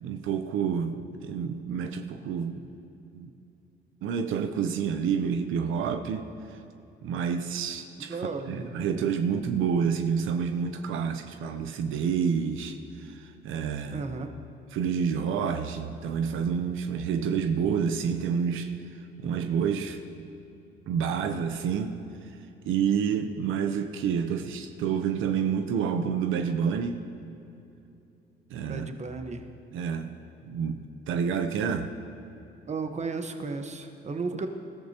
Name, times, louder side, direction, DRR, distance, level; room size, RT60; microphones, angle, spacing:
voice 1, 0.0-2.7 3.1-3.3 4.0-6.6 7.0-8.2 8.5-14.1 14.7-18.7 19.2-20.0 20.9-22.3 22.6-27.0 28.5-28.9 29.7-30.2 30.4-31.9, right 7 dB, 85° right, 7 dB, 0.7 m, -29 dB
voice 2, 8.1-8.7 13.9-14.3 28.7-29.4 32.7-34.5, right 4 dB, 35° right, 6 dB, 1.1 m, -34 dB
20.5 x 13.5 x 2.9 m, 2.9 s
cardioid pair, 90°, 20 cm